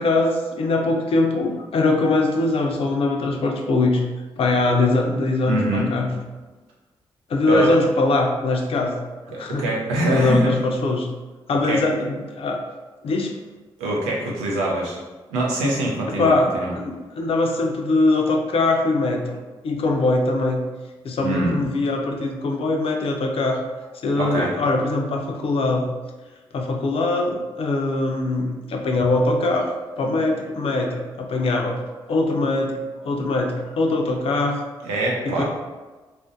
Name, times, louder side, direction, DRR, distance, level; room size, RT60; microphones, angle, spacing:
voice 1, 0.0-4.0 4.4-6.1 7.3-9.0 9.3-9.7 10.1-11.1 11.5-12.6 13.0-13.3 16.1-20.6 21.0-23.6 24.0-25.9 26.5-29.7 30.0-31.8 32.1-34.6 35.2-35.4, left 2 dB, 55° left, 2 dB, 0.4 m, -22 dB
voice 2, 5.5-5.9 7.5-7.7 9.3-10.4 11.7-11.8 13.8-15.0 15.3-16.7 21.2-21.6 24.2-24.5 34.8-35.4, right 1 dB, 85° right, -3 dB, 0.5 m, -23 dB
2.4 x 2.1 x 2.5 m, 1.2 s
hypercardioid pair, 40°, 11 cm